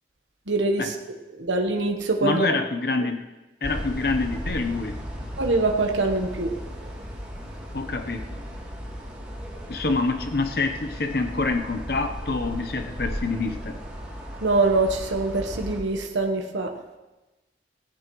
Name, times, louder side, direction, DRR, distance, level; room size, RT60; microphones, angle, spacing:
voice 1, 0.5-0.8 1.4-2.4 5.4-6.5 14.4-16.7, right 2 dB, 90° right, 3 dB, 1.2 m, -23 dB
voice 2, 2.2-3.2 3.6-5.0 7.7-8.4 9.7-13.8, left 3 dB, 55° left, 6 dB, 0.8 m, -26 dB
sound 1, 3.6-15.8, equal, 5° right, 3.0 m, -36 dB
17.0 x 16.0 x 3.1 m, 1.1 s
head